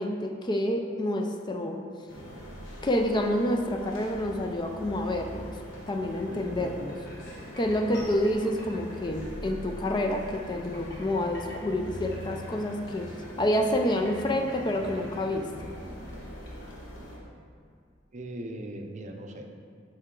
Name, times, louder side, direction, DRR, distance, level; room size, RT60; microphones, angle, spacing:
voice 1, 0.0-1.8 2.8-5.5 5.9-7.0 7.6-13.1 13.4-15.7, left 1 dB, 25° left, 3 dB, 0.4 m, -28 dB
sound 1, 2.1-17.2, equal, 85° left, 1.2 m, -43 dB
sound 2, 6.1-15.4, equal, 60° left, 1.3 m, -48 dB
voice 2, 6.5-6.9 7.9-8.1 18.1-19.5, right 1 dB, 40° right, 4 dB, 0.5 m, -39 dB
7.3 x 4.5 x 3.8 m, 2.2 s
head